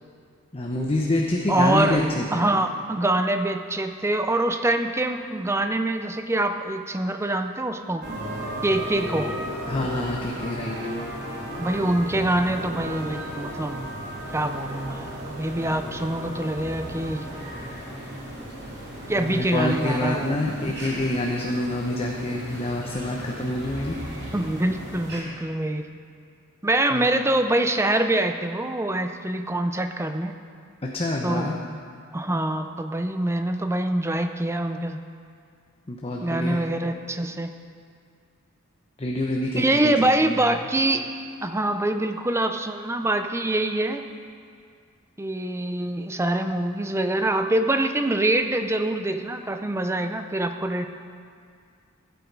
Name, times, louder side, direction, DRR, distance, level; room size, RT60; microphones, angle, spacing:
voice 1, 0.5-2.4 9.7-10.8 15.7-15.8 19.1-24.0 26.9-27.1 30.8-31.6 35.9-36.6 39.0-40.7, left 1 dB, 25° left, -1 dB, 0.8 m, -27 dB
voice 2, 1.5-2.0 2.3-8.0 8.6-9.3 11.6-13.9 14.3-17.2 19.1-20.4 24.3-25.8 26.6-30.3 31.2-31.5 32.1-35.0 36.2-37.5 39.6-41.1 41.4-44.0 45.2-50.9, right 1 dB, 10° right, 7 dB, 0.5 m, -25 dB
sound 1, 8.0-25.2, equal, 55° right, 2.4 m, -35 dB
15.5 x 8.3 x 4.7 m, 2.2 s
head